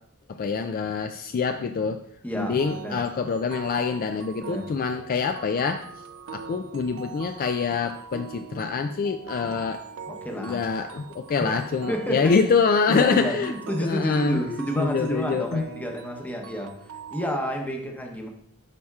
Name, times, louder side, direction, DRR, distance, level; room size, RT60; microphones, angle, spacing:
voice 1, 0.3-2.0 2.3-5.8 6.3-9.8 10.3-13.5 13.8-14.4 14.8-15.6, left 5 dB, 40° left, 6 dB, 0.3 m, -25 dB
voice 2, 2.2-3.0 4.4-4.7 9.4-9.5 10.1-10.6 11.4-11.6 11.9-12.4 12.9-16.8 17.1-18.3, equal, 5° left, 1 dB, 0.9 m, -30 dB
sound 1, 2.6-17.4, right 6 dB, 65° right, 0.4 m, -42 dB
11.0 x 4.2 x 2.4 m, 0.72 s
head